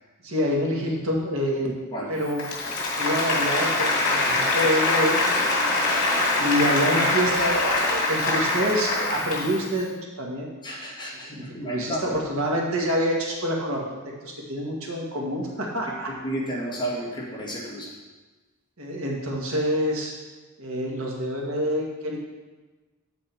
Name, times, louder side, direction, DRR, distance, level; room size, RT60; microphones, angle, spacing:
voice 1, 0.2-1.7 2.1-2.5 2.9-5.2 6.4-10.5 11.3-13.8 14.2-16.1 18.8-20.1 20.6-22.2, equal, 70° right, -2 dB, 1.8 m, -27 dB
Applause, 2.3-9.7, left 2 dB, 75° left, 2.1 m, -24 dB
voice 2, 10.6-12.2 16.1-17.9, right 1 dB, 20° left, -5 dB, 2.0 m, -32 dB
7.8 x 7.6 x 4.5 m, 1.3 s
head